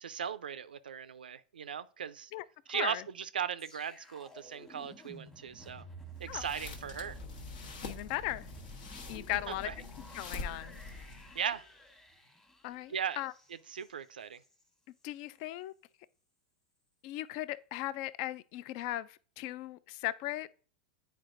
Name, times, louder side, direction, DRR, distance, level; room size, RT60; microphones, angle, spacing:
voice 1, 0.0-2.3 2.7-5.8 6.2-7.2 9.5-9.7 11.4-11.6 12.9-13.2 13.7-14.4, right 8 dB, 85° right, 0.3 m, -38 dB
voice 2, 2.3-3.0 6.3-6.4 7.8-8.5 9.1-9.7 10.1-10.8 11.3-11.4 12.6-13.3 15.0-15.7 17.0-20.5, left 15 dB, 50° left, 0.3 m, -38 dB
sound 1, 3.6-14.7 15.0-15.2, right 1 dB, 10° left, 1.2 m, -53 dB
sound 2, 6.2-11.4, left 3 dB, 70° left, 1.2 m, -45 dB
9.0 x 4.4 x 2.5 m
hypercardioid pair, 100°, 5 cm